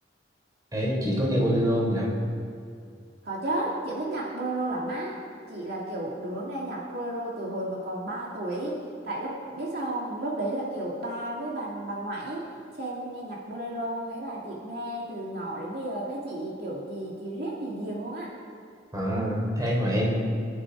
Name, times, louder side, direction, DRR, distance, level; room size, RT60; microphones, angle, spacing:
voice 1, 0.7-2.1 18.9-20.1, equal, 20° right, -4 dB, 3.9 m, -25 dB
voice 2, 3.2-5.2 5.5-12.5 12.8-18.3, right 1 dB, 60° right, -4 dB, 2.6 m, -33 dB
24.5 x 10.5 x 4.9 m, 2.3 s
head